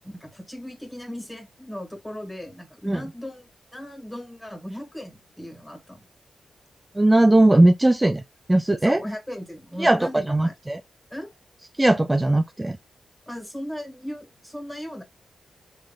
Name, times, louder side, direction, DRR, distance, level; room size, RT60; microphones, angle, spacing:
voice 1, 0.0-6.0 8.8-10.5 11.1-11.3 13.3-15.0, equal, 10° left, 1.8 m, -37 dB
voice 2, 7.0-8.2 8.5-9.0 9.8-10.8 11.8-12.8, right 1 dB, 15° right, 0.3 m, -18 dB
3.9 x 3.2 x 2.4 m
cardioid pair, 70°, 0 cm